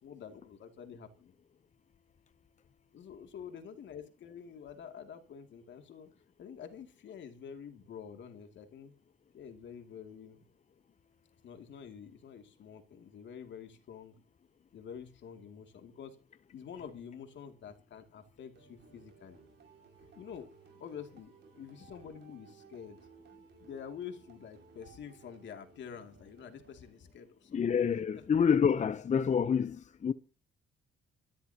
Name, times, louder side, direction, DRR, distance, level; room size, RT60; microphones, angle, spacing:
voice 1, 0.0-1.3 2.9-6.1 6.4-8.9 9.3-10.4 11.4-14.1 14.7-16.2 16.5-19.4 20.1-20.5 20.8-23.0 23.6-27.6 28.1-28.2, left 7 dB, 65° left, 2.6 m, -48 dB
sound 1, 18.6-27.5, right 5 dB, 60° right, 5.5 m, -59 dB
voice 2, 27.5-30.1, left 7 dB, 35° left, 0.7 m, -27 dB
26.5 x 13.0 x 2.9 m
cardioid pair, 90°, 20 cm